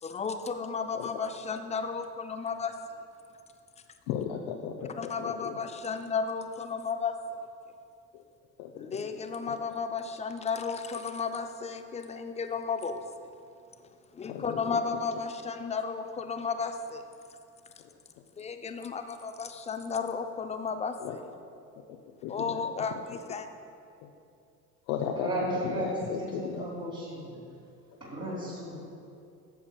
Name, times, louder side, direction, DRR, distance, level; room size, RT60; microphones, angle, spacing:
voice 1, 0.0-2.7 5.0-7.1 8.7-13.3 14.1-17.0 18.4-21.3 22.3-23.5, left 5 dB, 15° left, 7 dB, 0.4 m, -33 dB
voice 2, 4.1-5.3 8.6-9.0 14.3-14.6 21.0-21.2 22.2-22.3 24.9-26.7, left 8 dB, 60° left, 2 dB, 0.7 m, -35 dB
voice 3, 25.1-25.9 26.2-27.4 28.0-28.8, right 1 dB, 35° right, -8 dB, 2.1 m, -35 dB
13.5 x 7.1 x 2.3 m, 2.5 s
figure-of-eight pair, 60°, 47 cm